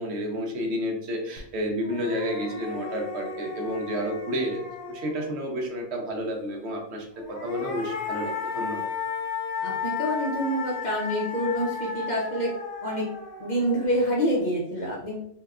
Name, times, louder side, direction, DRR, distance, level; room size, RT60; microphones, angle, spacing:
voice 1, 0.0-4.6 4.9-8.9, equal, 65° right, 2 dB, 0.9 m, -30 dB
sound 1, 1.4-1.5 1.8-5.5 7.1-14.4, left 5 dB, 80° left, 1.0 m, -34 dB
voice 2, 9.6-12.5 12.8-13.1 13.4-15.2, equal, 45° left, -4 dB, 0.6 m, -27 dB
3.3 x 2.7 x 2.3 m, 0.74 s
omnidirectional pair, 1.3 m